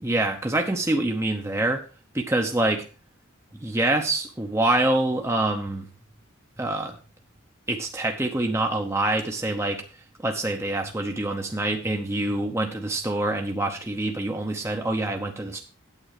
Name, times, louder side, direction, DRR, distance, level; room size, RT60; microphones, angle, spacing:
voice 1, 0.0-1.8 2.1-2.8 3.6-5.9 6.6-7.0 7.7-9.8 10.2-15.6, right 2 dB, 15° right, 3 dB, 0.8 m, -25 dB
9.0 x 8.3 x 4.8 m, 0.35 s
head